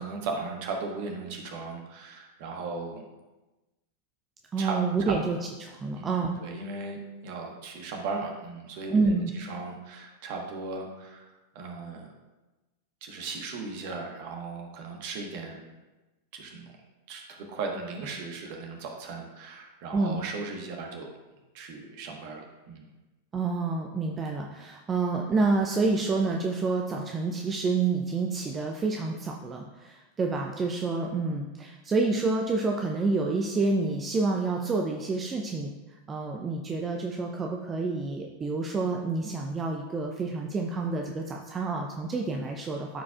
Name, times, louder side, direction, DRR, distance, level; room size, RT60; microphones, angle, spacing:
voice 1, 0.0-3.0 4.6-5.2 6.0-6.1 6.4-11.3 11.5-12.1 13.0-15.6 16.3-16.7 17.1-17.2 17.5-21.1 21.5-22.9, right 4 dB, 45° right, 2 dB, 1.3 m, -37 dB
voice 2, 4.5-6.4 8.9-9.3 19.9-20.2 23.3-35.7 36.1-43.0, right 3 dB, 20° right, 1 dB, 0.6 m, -28 dB
13.0 x 4.8 x 2.4 m, 1.1 s
figure-of-eight pair, 90°, 0 cm